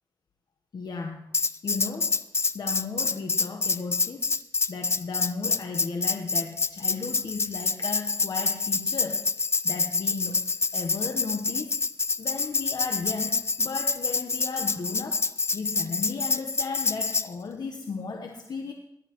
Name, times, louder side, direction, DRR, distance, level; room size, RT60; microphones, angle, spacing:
voice 1, 0.7-1.3 1.6-2.2 2.5-4.3 4.7-9.3 9.6-11.8 12.2-15.3 15.5-18.7, left 4 dB, 65° left, 3 dB, 1.1 m, -35 dB
Tambourine, 1.3-17.3, left 4 dB, 35° left, 0.6 m, -27 dB
20.0 x 11.5 x 3.1 m, 0.79 s
cardioid pair, 75°, 8 cm